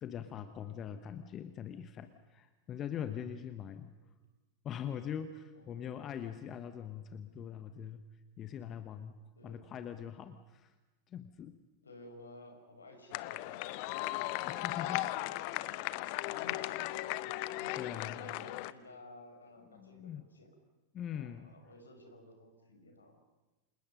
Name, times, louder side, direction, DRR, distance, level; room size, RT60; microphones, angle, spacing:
voice 1, 0.0-3.9 4.6-8.0 8.4-10.7 11.1-11.6 14.2-15.3 17.7-18.2 19.7-20.2 20.9-21.5, left 9 dB, 30° left, 10 dB, 1.3 m, -42 dB
voice 2, 3.8-4.1 5.5-6.1 9.3-9.6 11.8-15.4 16.3-20.5 21.1-23.2, left 1 dB, 75° left, 4 dB, 5.1 m, -55 dB
sound 1, 13.1-18.7, left 18 dB, 45° left, 0.8 m, -37 dB
29.5 x 27.5 x 5.4 m, 1.1 s
figure-of-eight pair, 90°, 0 cm